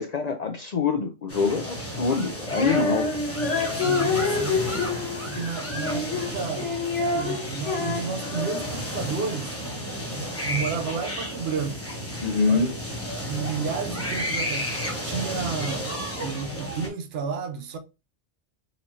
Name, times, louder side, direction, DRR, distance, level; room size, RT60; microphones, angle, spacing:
voice 1, 0.0-3.2 12.2-12.7, left 5 dB, 65° left, 0.4 m, -25 dB
sound 1, 1.3-16.9, equal, 15° left, 0.8 m, -32 dB
Female singing, 2.5-8.9, left 4 dB, 85° left, 1.5 m, -28 dB
voice 2, 3.8-4.7 5.2-6.7 7.1-9.5 10.4-12.1 12.5-12.7 13.2-14.7 15.0-15.9 16.2-17.8, right 5 dB, 65° right, 0.8 m, -32 dB
4.1 x 2.7 x 2.9 m
omnidirectional pair, 1.2 m